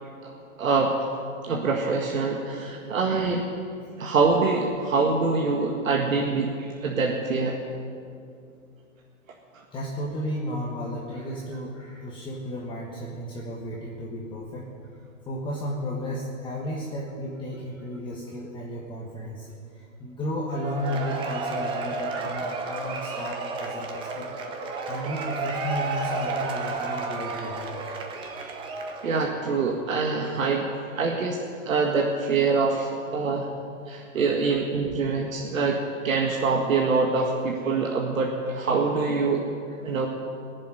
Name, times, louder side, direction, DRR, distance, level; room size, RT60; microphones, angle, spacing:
voice 1, 0.6-0.9 1.4-3.4 4.0-7.6 29.0-30.7 31.0-31.4 31.7-33.5 33.9-39.4 39.8-40.1, right 4 dB, 80° right, 0 dB, 1.9 m, -25 dB
voice 2, 9.7-14.7 15.2-19.5 19.7-24.3 24.9-27.8 28.2-28.6 34.3-34.5, equal, 10° left, -4 dB, 1.3 m, -33 dB
Cheering / Applause / Crowd, 20.5-29.5, right 4 dB, 15° right, 0.8 m, -32 dB
19.5 x 7.7 x 9.5 m, 2.5 s
hypercardioid pair, 150°, 40 cm